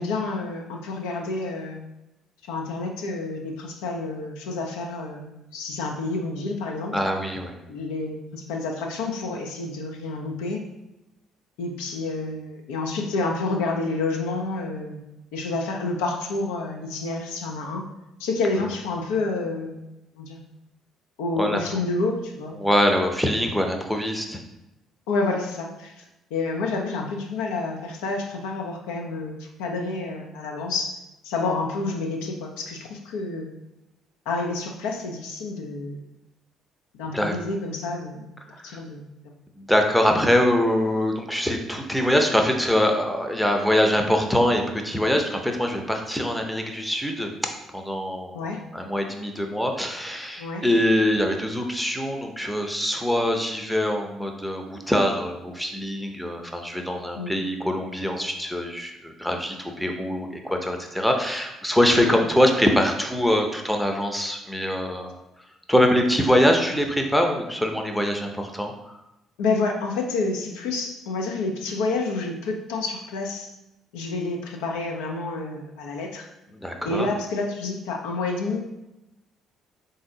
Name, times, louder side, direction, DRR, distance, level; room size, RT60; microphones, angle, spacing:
voice 1, 0.0-1.8 2.4-7.0 7.7-10.6 11.6-15.0 15.3-17.9 18.2-19.8 20.1-20.4 21.2-22.6 25.1-26.0 26.3-33.5 34.3-36.0 37.0-38.3 38.6-39.0 48.3-48.6 50.4-50.6 57.2-57.3 62.0-62.2 69.4-73.5 73.9-76.3 76.8-78.6, left 3 dB, 65° left, 1 dB, 0.5 m, -29 dB
voice 2, 6.9-7.6 21.4-21.6 22.6-24.4 37.1-37.4 38.5-38.8 39.6-47.3 47.7-48.4 48.7-65.1 65.7-68.7 76.5-77.1, equal, 5° left, 3 dB, 0.7 m, -23 dB
3.8 x 2.7 x 3.7 m, 0.94 s
figure-of-eight pair, 45°, 0 cm